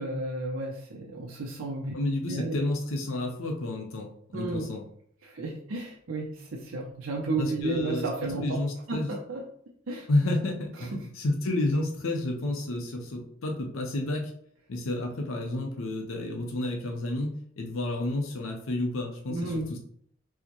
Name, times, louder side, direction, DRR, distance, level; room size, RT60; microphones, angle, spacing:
voice 1, 0.0-2.0 2.3-2.6 4.3-4.7 5.2-8.6 8.9-9.4 9.9-10.1 10.8-11.0 19.3-19.7, right 2 dB, 75° right, -1 dB, 0.6 m, -32 dB
voice 2, 1.9-4.8 7.4-9.1 10.1-14.3 14.7-19.8, left 2 dB, 80° left, 3 dB, 0.7 m, -30 dB
4.6 x 2.1 x 2.9 m, 0.65 s
head